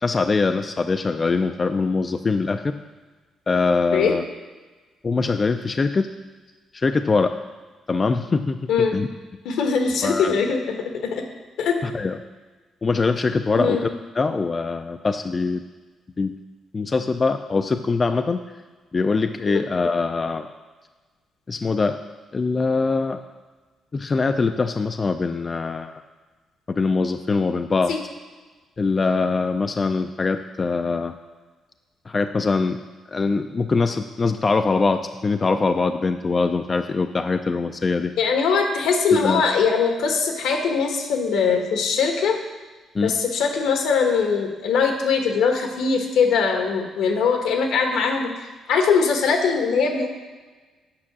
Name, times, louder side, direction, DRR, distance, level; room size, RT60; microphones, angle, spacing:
voice 1, 0.0-2.7 3.5-4.2 5.0-6.1 6.7-7.3 7.9-9.1 10.0-10.4 11.8-12.2 12.8-15.6 16.2-16.4 16.7-18.4 18.9-20.5 21.5-22.0 22.3-23.2 23.9-25.9 26.7-27.9 28.8-31.1 32.1-32.8 33.1-38.1 39.1-39.4 42.9-43.1, left 4 dB, 30° left, 7 dB, 0.4 m, -23 dB
voice 2, 9.4-10.8 11.0-11.2 11.6-11.7 13.5-13.8 27.9-28.0 38.2-42.4 43.0-48.3 48.7-50.1, left 5 dB, 85° left, 3 dB, 1.4 m, -21 dB
8.7 x 5.6 x 6.1 m, 1.3 s
cardioid pair, 90°, 0 cm